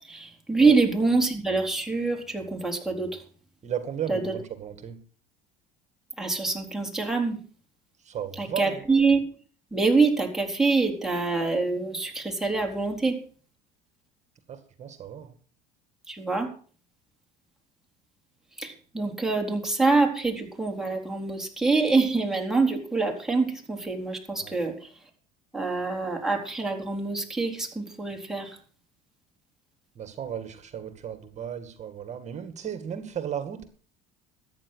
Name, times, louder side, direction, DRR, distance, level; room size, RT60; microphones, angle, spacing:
voice 1, 0.0-3.2 4.1-4.3 6.2-7.4 8.4-9.2 9.7-13.2 16.1-16.5 18.6-24.9 25.5-28.6, right 3 dB, ahead, 1 dB, 4.0 m, -25 dB
voice 2, 3.6-5.0 8.1-8.8 14.5-15.3 24.4-24.6 30.0-33.6, right 9 dB, 40° right, 9 dB, 2.2 m, -35 dB
13.5 x 9.8 x 6.4 m, 0.44 s
supercardioid pair, 100°, 19 cm